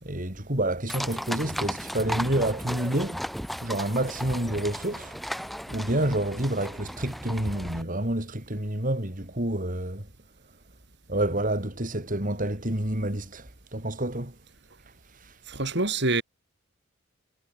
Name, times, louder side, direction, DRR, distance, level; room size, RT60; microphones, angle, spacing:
voice 1, 0.0-3.2 3.6-5.4 5.7-10.1 11.1-14.4 15.1-15.4, right 1 dB, 40° right, 4.6 m, -29 dB
sound 1, 0.9-7.8, equal, ahead, 5.7 m, -35 dB
voice 2, 15.5-16.2, right 2 dB, 60° right, 5.6 m, -26 dB
head